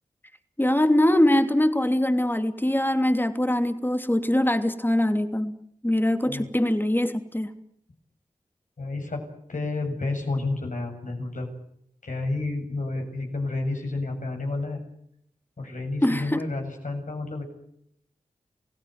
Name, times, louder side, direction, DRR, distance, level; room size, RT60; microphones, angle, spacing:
voice 1, 0.6-5.5 5.8-7.5 16.0-16.5, left 1 dB, 15° left, 8 dB, 2.9 m, -22 dB
voice 2, 8.8-9.2 9.5-11.5 12.0-14.8 15.6-17.4, left 2 dB, 65° left, 3 dB, 7.9 m, -30 dB
28.0 x 17.0 x 9.5 m, 0.73 s
cardioid pair, 45°, 14 cm